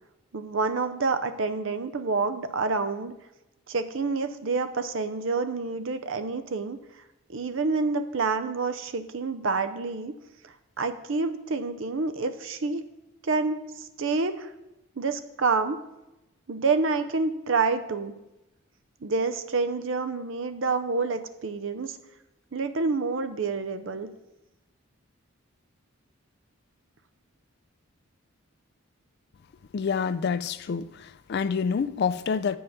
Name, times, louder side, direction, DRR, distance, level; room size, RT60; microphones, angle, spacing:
voice 1, 0.3-3.1 3.7-6.8 7.3-10.1 10.4-12.8 13.2-14.5 15.0-15.8 16.5-18.1 19.0-22.0 22.5-24.1, right 4 dB, 60° right, 0.6 m, -28 dB
voice 2, 29.7-32.6, left 6 dB, 50° left, 0.3 m, -27 dB
7.7 x 5.5 x 5.7 m
head